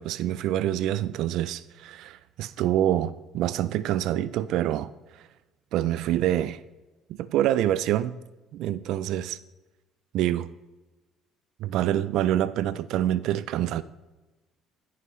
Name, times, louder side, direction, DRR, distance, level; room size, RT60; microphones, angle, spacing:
voice 1, 0.0-5.3 5.7-6.6 7.1-8.2 8.5-9.4 10.1-10.5 11.6-13.8, right 12 dB, 70° right, 0.3 m, -26 dB
15.0 x 5.6 x 3.1 m
cardioid pair, 135°, 0 cm